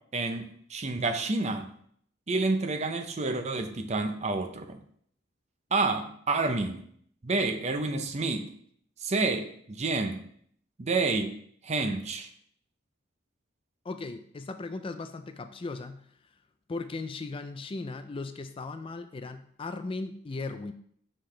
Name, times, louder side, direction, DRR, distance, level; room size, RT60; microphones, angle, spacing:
voice 1, 0.1-1.7 2.3-4.8 5.7-6.8 7.2-8.5 9.0-10.2 10.8-11.3 11.6-12.3, right 3 dB, 35° right, 7 dB, 0.6 m, -29 dB
voice 2, 13.8-16.1 16.7-20.7, left 3 dB, 25° left, 9 dB, 0.4 m, -37 dB
6.6 x 5.7 x 3.3 m, 0.64 s
head